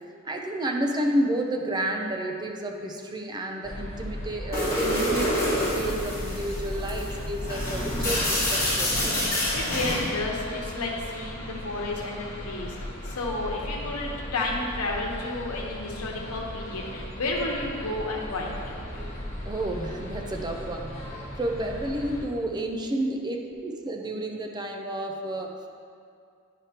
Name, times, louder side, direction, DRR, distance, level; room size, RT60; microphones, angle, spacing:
voice 1, 0.2-9.0 19.4-20.8 21.2-25.7, right 1 dB, 20° right, 2 dB, 0.5 m, -31 dB
sound 1, 3.6-22.2, left 1 dB, 30° left, 1.5 m, -37 dB
sound 2, 4.5-10.1, equal, 15° left, 1.6 m, -27 dB
voice 2, 9.5-12.7 13.0-18.5, left 2 dB, 85° left, -2 dB, 1.1 m, -31 dB
10.0 x 4.9 x 2.9 m, 2.3 s
head